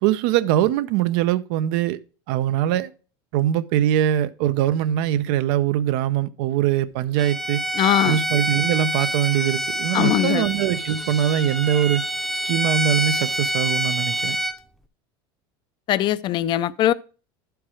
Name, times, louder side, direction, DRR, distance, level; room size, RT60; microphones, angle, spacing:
voice 1, 0.0-2.0 2.3-2.9 3.3-7.6 8.0-12.0 12.4-14.4, right 11 dB, 70° right, 0.6 m, -22 dB
Bowed string instrument, 7.2-14.6, right 1 dB, ahead, 0.7 m, -26 dB
voice 2, 7.8-8.2 9.9-10.4 15.9-16.9, left 12 dB, 40° left, 0.4 m, -20 dB
11.5 x 4.7 x 4.8 m
supercardioid pair, 120°, 12 cm